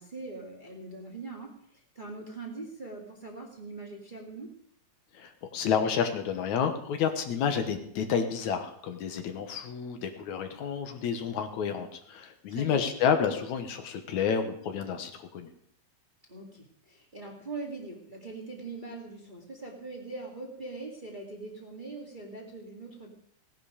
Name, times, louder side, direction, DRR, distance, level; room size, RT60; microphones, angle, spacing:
voice 1, 0.0-4.5 12.5-12.8 16.3-23.1, right 3 dB, 20° right, -1 dB, 1.8 m, -42 dB
voice 2, 5.1-15.5, left 7 dB, 75° left, 7 dB, 2.5 m, -30 dB
17.5 x 10.5 x 5.0 m, 0.68 s
omnidirectional pair, 3.4 m